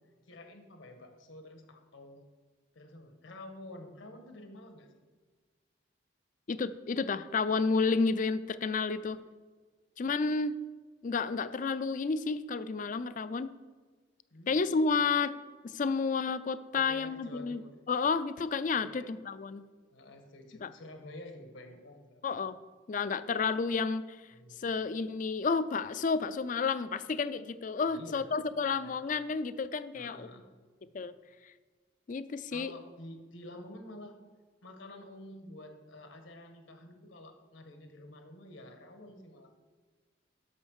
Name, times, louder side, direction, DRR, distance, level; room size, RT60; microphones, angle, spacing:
voice 1, 0.2-2.2 2.7-5.0 10.2-10.3 14.3-14.6 16.8-17.8 18.7-19.2 19.9-22.2 24.3-24.6 27.8-28.3 28.7-29.0 29.9-30.5 32.5-34.2 34.6-39.5, left 1 dB, 80° left, 5 dB, 1.5 m, -49 dB
voice 2, 6.5-9.2 10.0-10.5 11.0-13.5 14.5-15.4 15.6-17.6 17.9-19.6 20.6-20.7 22.2-22.6 22.9-24.2 24.6-30.3 30.9-31.1 32.1-32.7, left 4 dB, 40° left, 14 dB, 0.4 m, -31 dB
8.6 x 6.2 x 6.5 m, 1.4 s
head